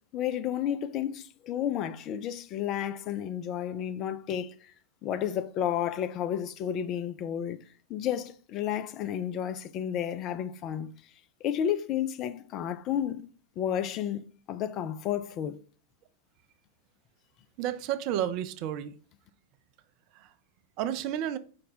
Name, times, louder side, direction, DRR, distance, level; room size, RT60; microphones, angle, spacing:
voice 1, 0.1-4.7 5.0-7.6 7.9-10.9 11.4-13.3 13.6-15.6, left 10 dB, 40° left, 0.4 m, -31 dB
voice 2, 17.6-19.0 20.1-20.3 20.8-21.4, right 11 dB, 45° right, 0.4 m, -31 dB
5.0 x 2.1 x 4.1 m
figure-of-eight pair, 90°, 0 cm